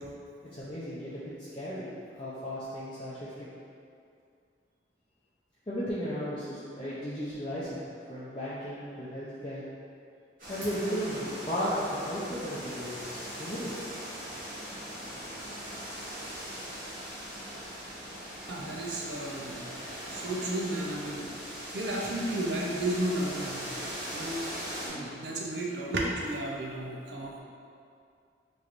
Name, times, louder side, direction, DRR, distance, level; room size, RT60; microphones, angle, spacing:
voice 1, 0.5-1.2 1.5-1.9 2.1-3.5 5.7-7.8 8.1-9.6 10.5-13.7, equal, 30° left, -11 dB, 0.5 m, -35 dB
sound 1, 10.4-24.9, equal, 50° right, 1.4 m, -40 dB
voice 2, 18.5-19.6 20.1-21.3 21.7-23.7 24.1-24.5 24.8-27.4, right 1 dB, 70° right, -2 dB, 0.6 m, -33 dB
4.4 x 3.1 x 2.5 m, 2.4 s
head